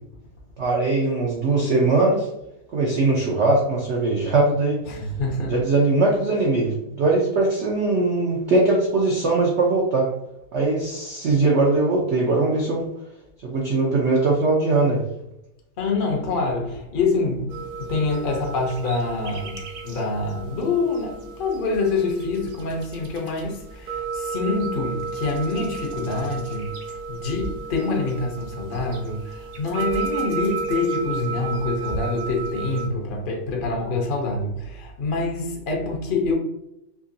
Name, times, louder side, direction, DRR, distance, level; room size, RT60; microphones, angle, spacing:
voice 1, 0.6-2.3 2.7-4.8 5.5-10.1 10.5-12.8 13.4-15.0, right 3 dB, 80° right, 0.6 m, -20 dB
voice 2, 4.9-5.5 15.8-19.6 19.8-36.3, left 3 dB, 60° left, 0.5 m, -26 dB
sound 1, 17.5-32.9, right 4 dB, 65° right, 0.9 m, -33 dB
3.6 x 2.9 x 2.6 m
omnidirectional pair, 2.0 m